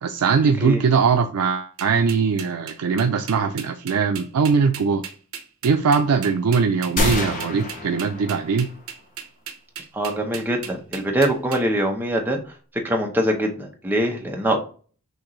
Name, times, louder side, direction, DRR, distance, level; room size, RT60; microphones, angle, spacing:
voice 1, 0.0-5.0 5.6-8.7, right 5 dB, 80° right, 5 dB, 0.4 m, -21 dB
sound 1, 1.8-11.6, right 7 dB, 65° right, 0.9 m, -36 dB
sound 2, 7.0-8.8, left 2 dB, 35° left, 0.9 m, -27 dB
voice 2, 9.9-12.4 12.8-14.6, right 1 dB, 10° right, 1 dB, 0.8 m, -23 dB
6.2 x 2.6 x 3.1 m, 0.41 s
head